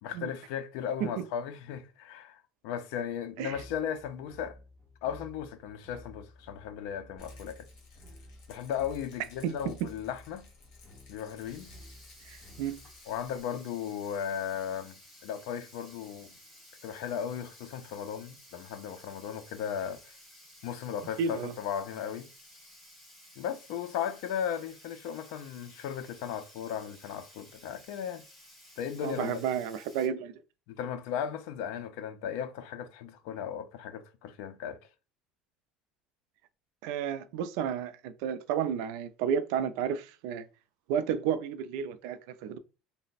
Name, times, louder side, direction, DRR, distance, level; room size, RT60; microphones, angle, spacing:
voice 1, 0.0-4.6 5.0-7.7 8.5-10.5 11.1-11.7 13.1-16.3 16.8-20.1 20.6-22.3 23.4-28.2 28.8-29.4 30.7-34.8, left 8 dB, 75° left, 0.4 m, -36 dB
sound 1, 3.5-13.0, left 1 dB, 10° right, 0.8 m, -53 dB
Rattle, 7.2-13.4, left 4 dB, 55° left, 1.3 m, -58 dB
Sink (filling or washing), 11.3-30.1, left 1 dB, 5° left, 1.6 m, -55 dB
voice 2, 12.2-12.8 21.2-21.5 29.0-30.3 36.8-40.5 40.9-42.6, right 8 dB, 75° right, 0.4 m, -32 dB
3.2 x 2.0 x 4.0 m
cardioid pair, 170°, 0 cm